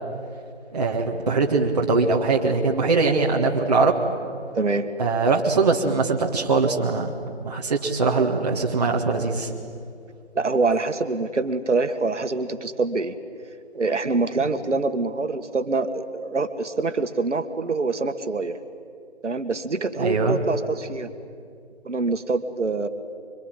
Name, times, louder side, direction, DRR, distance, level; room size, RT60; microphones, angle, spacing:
voice 1, 0.7-3.9 5.0-7.1 7.4-9.5 20.0-20.4, right 4 dB, 35° right, -1 dB, 1.8 m, -21 dB
voice 2, 4.5-4.9 10.4-13.2 13.7-18.6 19.2-21.1 21.9-22.9, right 3 dB, 80° right, 8 dB, 2.0 m, -25 dB
24.5 x 23.5 x 9.2 m, 2.3 s
figure-of-eight pair, 170°, 35 cm